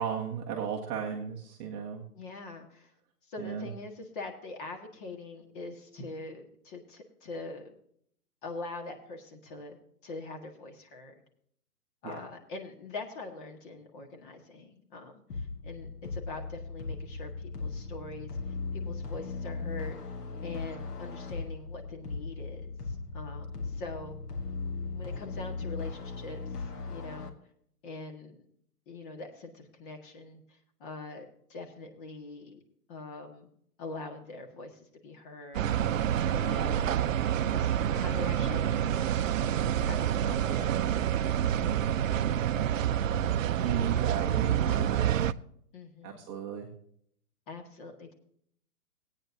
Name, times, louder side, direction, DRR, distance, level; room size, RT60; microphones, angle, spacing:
voice 1, 0.0-2.0 3.4-3.7 12.0-12.2 36.4-36.8 40.5-40.7 43.6-45.1 46.0-46.7, right 7 dB, 15° right, -1 dB, 0.8 m, -35 dB
voice 2, 2.1-2.9 3.3-7.7 8.4-9.8 10.0-11.1 12.0-18.3 18.7-20.0 20.4-24.2 24.9-27.3 27.8-28.4 28.9-32.6 32.9-33.5 33.8-35.7 36.3-37.0 37.5-39.2 39.8-41.2 42.1-42.6 45.7-46.2 47.5-48.1, left 3 dB, 35° left, 4 dB, 1.8 m, -43 dB
sound 1, 15.3-27.3, left 4 dB, 75° left, 1.8 m, -38 dB
sound 2, 35.5-45.3, right 10 dB, 60° right, 0.5 m, -28 dB
17.5 x 9.1 x 2.8 m, 0.66 s
hypercardioid pair, 150°, 46 cm